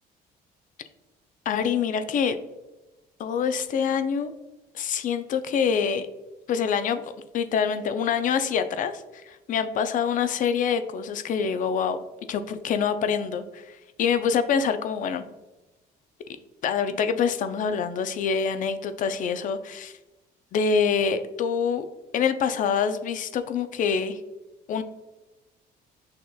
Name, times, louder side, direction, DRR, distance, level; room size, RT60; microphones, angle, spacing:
voice 1, 1.5-2.4 3.2-4.3 4.7-6.1 6.5-7.0 7.3-12.0 12.3-15.2 16.6-19.9 20.5-21.9 22.1-24.2 24.7-24.8, left 6 dB, 50° left, 10 dB, 0.4 m, -25 dB
6.3 x 2.9 x 2.3 m, 1.1 s
cardioid pair, 110°, 17 cm